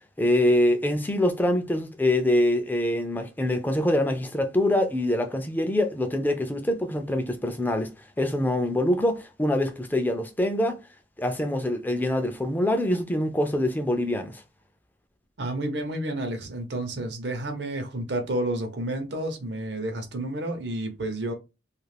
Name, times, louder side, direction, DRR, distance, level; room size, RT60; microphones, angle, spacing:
voice 1, 0.2-10.8 11.2-14.4, left 1 dB, 10° left, 0.4 m, -24 dB
voice 2, 15.4-21.3, right 1 dB, 70° right, 0.8 m, -30 dB
2.4 x 2.4 x 3.2 m
head